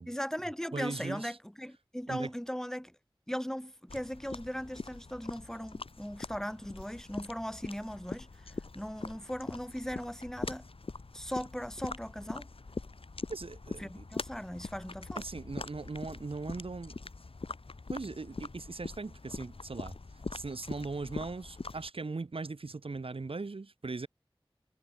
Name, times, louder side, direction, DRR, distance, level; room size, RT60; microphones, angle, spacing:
voice 1, 0.1-2.9 3.3-8.3 8.7-10.7 11.1-12.5 13.8-15.2, equal, 5° left, 3.0 m, -38 dB
voice 2, 0.7-1.4 2.1-2.3 13.3-14.1 15.2-17.0 17.9-19.9 20.3-24.1, right 3 dB, 85° right, 1.9 m, -39 dB
sound 1, 3.9-21.9, left 3 dB, 90° left, 4.1 m, -43 dB
wide cardioid pair, 45°, 9 cm